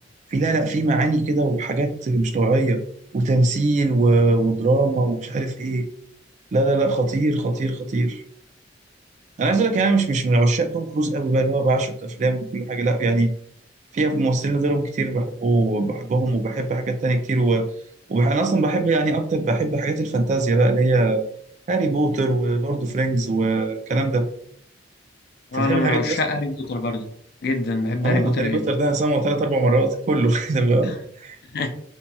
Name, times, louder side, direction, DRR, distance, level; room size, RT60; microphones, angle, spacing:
voice 1, 0.3-2.8 3.1-5.8 6.5-8.2 9.4-13.3 13.9-17.7 18.1-21.2 21.7-24.3 25.5-26.2 28.0-30.9 31.2-31.4, right 2 dB, 40° right, 7 dB, 0.3 m, -21 dB
voice 2, 25.5-27.1 27.4-28.6 30.8-30.9 31.5-31.7, left 2 dB, 55° left, 6 dB, 0.4 m, -24 dB
2.8 x 2.7 x 2.2 m, 0.65 s
head